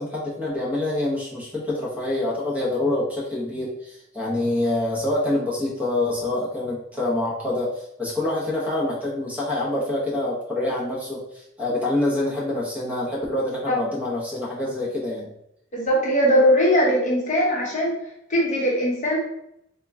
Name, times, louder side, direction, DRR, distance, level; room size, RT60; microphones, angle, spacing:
voice 1, 0.0-15.3, left 1 dB, 5° right, -5 dB, 0.9 m, -26 dB
voice 2, 15.7-17.9 18.3-19.2, equal, 40° left, -3 dB, 0.9 m, -20 dB
3.7 x 2.2 x 3.4 m, 0.78 s
head